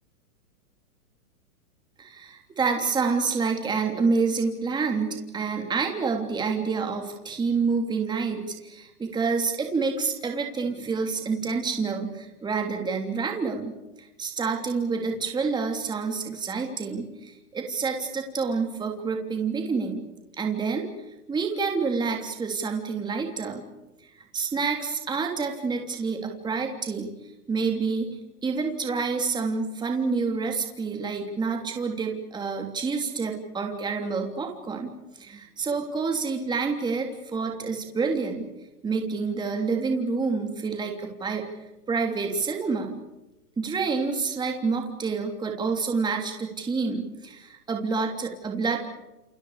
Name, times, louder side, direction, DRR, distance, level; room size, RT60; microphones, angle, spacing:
voice 1, 2.0-20.0 20.4-20.9 21.3-23.6 24.3-27.1 27.5-28.1 28.4-34.9 35.2-38.4 38.8-41.4 41.9-43.0 43.6-48.9, right 4 dB, 10° right, 3 dB, 3.2 m, -28 dB
29.5 x 29.5 x 5.0 m, 0.97 s
hypercardioid pair, 155°, 46 cm